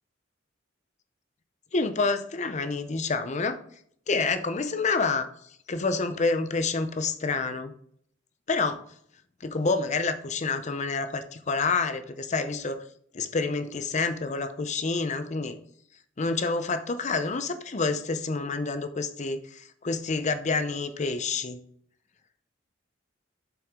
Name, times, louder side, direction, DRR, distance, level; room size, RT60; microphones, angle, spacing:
voice 1, 1.7-3.6 4.1-5.3 5.7-7.7 8.5-8.8 9.4-12.8 13.1-15.6 16.2-21.6, left 4 dB, 40° left, 10 dB, 0.6 m, -28 dB
7.3 x 5.9 x 3.7 m, 0.64 s
head